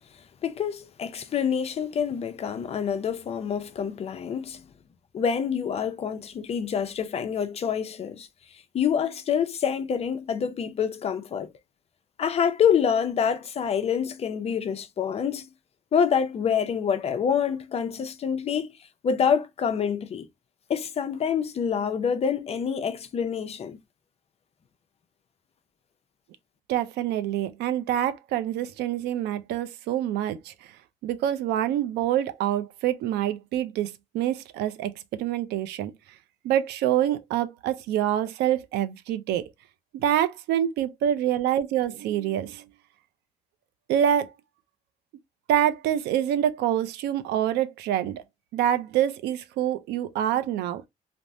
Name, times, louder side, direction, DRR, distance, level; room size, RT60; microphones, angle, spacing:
voice 1, 0.4-4.6 5.1-8.3 8.7-11.5 12.2-15.4 15.9-18.7 19.0-20.3 20.7-23.8, left 7 dB, 35° left, 0.5 m, -26 dB
voice 2, 26.7-30.7 31.0-35.9 36.4-39.5 39.9-42.6 43.9-44.3 45.5-48.2 48.5-50.8, right 11 dB, 80° right, 0.4 m, -26 dB
3.4 x 2.0 x 2.5 m
cardioid pair, 110°, 17 cm